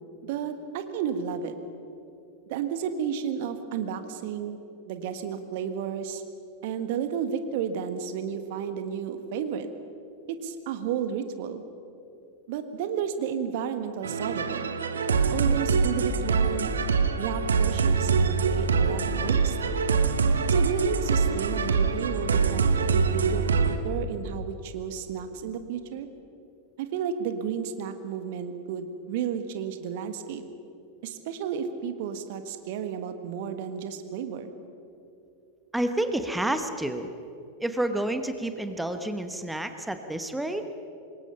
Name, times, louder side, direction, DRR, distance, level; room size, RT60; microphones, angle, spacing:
voice 1, 0.3-1.5 2.5-4.6 4.8-6.2 6.6-9.7 10.3-11.6 12.5-14.6 15.3-16.7 17.2-19.6 20.5-26.1 26.8-30.4 31.0-34.5, right 8 dB, 50° right, 8 dB, 1.6 m, -32 dB
sound 1, 14.0-23.8, right 5 dB, 70° right, 1.2 m, -24 dB
voice 2, 35.7-37.1 37.6-40.7, right 1 dB, 5° right, 8 dB, 1.2 m, -29 dB
26.0 x 21.5 x 5.6 m, 2.6 s
figure-of-eight pair, 90°, 0 cm